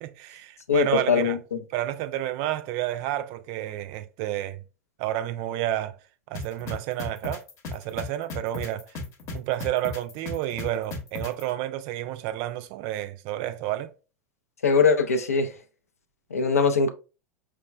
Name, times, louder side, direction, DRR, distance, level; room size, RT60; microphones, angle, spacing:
voice 1, 0.0-1.4 1.7-4.6 5.0-5.9 6.3-7.4 7.7-8.8 9.3-13.9, right 13 dB, 50° right, 0.3 m, -30 dB
voice 2, 0.7-1.6 14.6-15.5 16.3-16.9, left 5 dB, 85° left, 0.4 m, -21 dB
sound 1, 6.3-11.4, left 3 dB, 40° left, 0.8 m, -34 dB
4.5 x 2.1 x 2.2 m
hypercardioid pair, 85°, 8 cm